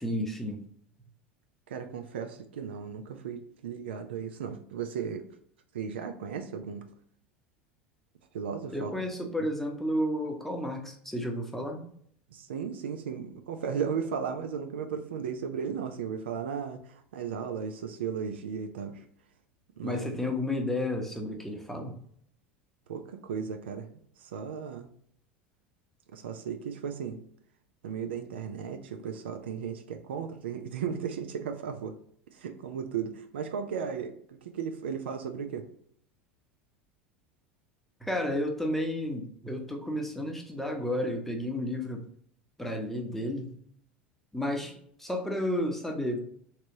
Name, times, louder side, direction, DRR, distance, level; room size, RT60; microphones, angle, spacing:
voice 1, 0.0-0.6 8.7-11.9 19.8-22.0 38.0-42.0 42.6-43.6 44.3-46.2, left 1 dB, 5° left, 2 dB, 0.8 m, -32 dB
voice 2, 1.7-5.2 5.7-6.8 8.3-8.9 9.2-9.3 12.3-19.0 19.8-20.2 22.9-23.9 24.2-24.9 26.1-27.2 27.8-31.9 32.3-35.7, right 7 dB, 75° right, 6 dB, 0.4 m, -35 dB
3.2 x 2.9 x 2.6 m, 0.63 s
figure-of-eight pair, 75°, 6 cm